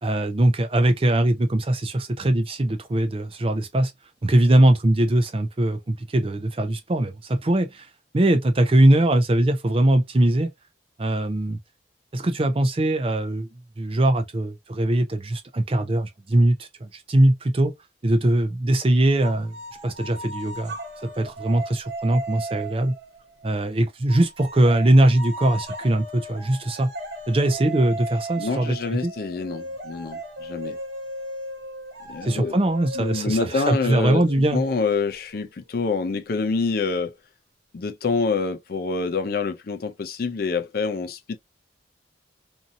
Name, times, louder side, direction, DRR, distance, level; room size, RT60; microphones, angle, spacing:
voice 1, 0.0-3.9 4.2-7.9 8.1-10.5 11.0-11.6 12.1-13.5 13.8-17.7 18.0-19.5 19.8-20.8 21.0-22.9 23.4-26.9 27.3-29.1 32.2-34.6, right 1 dB, 30° right, 0.5 m, -21 dB
sound 1, 19.2-23.6 24.1-35.4, right 1 dB, 65° right, 1.1 m, -37 dB
voice 2, 28.4-30.8 32.1-32.6 33.0-37.1 37.7-41.4, left 4 dB, 50° left, 0.5 m, -26 dB
2.7 x 2.6 x 2.6 m
head